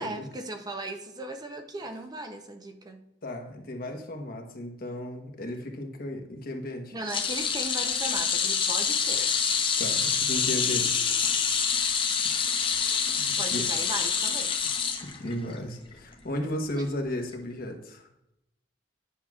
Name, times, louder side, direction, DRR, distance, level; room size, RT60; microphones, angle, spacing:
voice 1, 0.0-3.0 6.9-9.3 13.4-14.5 16.8-16.9, right 2 dB, 20° right, 5 dB, 0.6 m, -37 dB
voice 2, 3.2-6.9 9.8-11.1 13.2-13.6 15.0-18.1, left 1 dB, 55° left, 3 dB, 1.0 m, -35 dB
sound 1, 7.1-15.6 15.9-16.1 17.3-17.4, left 6 dB, 30° left, 0.8 m, -26 dB
10.0 x 5.9 x 2.4 m, 0.82 s
head